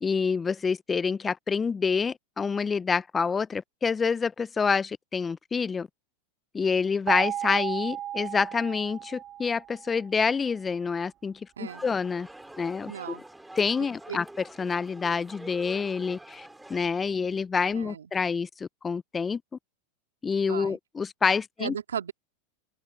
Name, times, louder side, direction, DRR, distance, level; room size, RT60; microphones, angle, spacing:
voice 1, 0.0-5.9 6.5-12.3 12.6-13.2 13.6-14.3 14.6-19.4 20.2-21.7, left 5 dB, 20° left, 0.6 m, -27 dB
sound 1, 7.1-10.0, right 11 dB, 35° right, 0.7 m, -34 dB
sound 2, 11.6-16.8, right 1 dB, 5° right, 5.1 m, -47 dB
voice 2, 12.9-13.2 14.1-14.2 17.7-18.1 20.5-20.8 21.6-22.1, right 8 dB, 85° right, 2.1 m, -35 dB
open air
hypercardioid pair, 95°, 0 cm